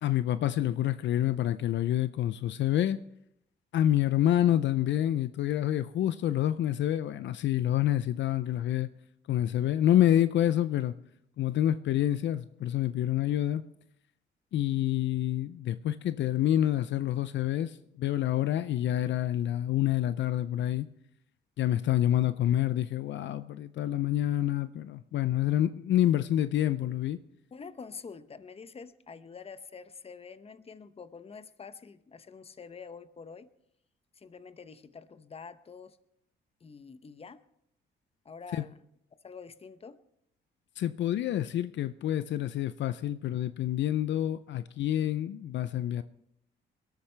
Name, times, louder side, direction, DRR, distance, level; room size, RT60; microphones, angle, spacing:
voice 1, 0.0-3.0 3.7-8.9 9.3-11.0 11.4-13.6 14.5-20.9 21.6-27.2 38.5-38.6 40.8-46.0, left 12 dB, 65° left, 14 dB, 0.5 m, -27 dB
voice 2, 27.5-33.5 34.1-36.0 36.6-37.4 38.2-38.8 39.2-40.0, left 5 dB, 30° left, 13 dB, 0.8 m, -46 dB
21.0 x 13.0 x 3.3 m, 0.76 s
cardioid pair, 90°, 20 cm